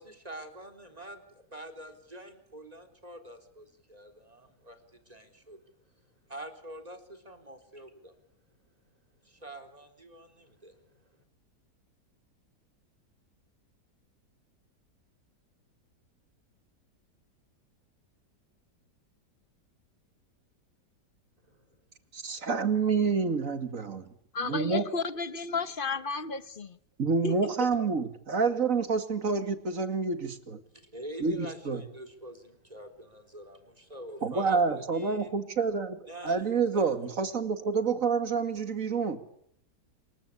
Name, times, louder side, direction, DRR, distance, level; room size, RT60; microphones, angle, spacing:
voice 1, 0.0-8.2 9.2-11.2 21.4-21.8 30.9-35.3 36.1-36.9, right 1 dB, 20° right, 6 dB, 3.8 m, -46 dB
voice 2, 22.1-24.1 24.4-24.8 27.0-30.6 31.2-31.8 34.2-39.2, right 5 dB, 50° right, 9 dB, 2.5 m, -28 dB
voice 3, 24.3-26.8 27.2-27.3, left 4 dB, 35° left, 13 dB, 1.2 m, -32 dB
27.5 x 23.5 x 8.6 m, 0.71 s
omnidirectional pair, 1.8 m